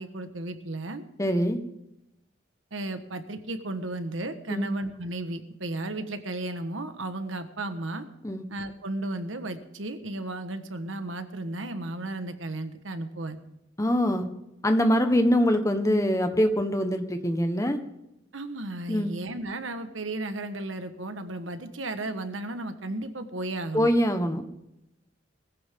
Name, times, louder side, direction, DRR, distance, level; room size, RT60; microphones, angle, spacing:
voice 1, 0.0-1.0 2.7-8.1 8.5-13.4 18.3-23.9, right 2 dB, 90° right, 9 dB, 1.4 m, -34 dB
voice 2, 1.2-1.6 4.5-4.7 8.2-8.4 13.8-14.3 14.6-17.8 18.9-19.1 23.7-24.4, equal, 15° left, 6 dB, 1.3 m, -23 dB
20.5 x 15.0 x 3.8 m, 0.87 s
head